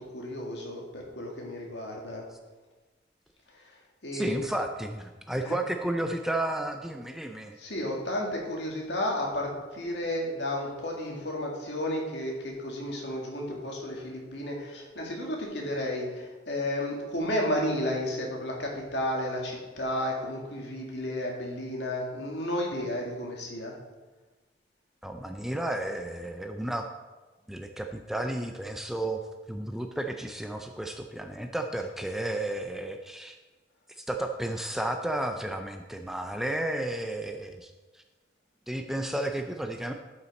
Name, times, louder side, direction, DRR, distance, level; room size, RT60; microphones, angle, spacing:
voice 1, 0.0-2.2 3.6-3.7 4.0-4.4 5.4-5.6 7.6-23.7, left 1 dB, 65° left, -1 dB, 2.0 m, -32 dB
voice 2, 4.1-7.6 25.0-26.9 27.5-29.2 29.5-33.4 34.0-38.0 38.7-39.9, right 1 dB, ahead, 5 dB, 0.4 m, -32 dB
12.0 x 5.7 x 4.2 m, 1.3 s
head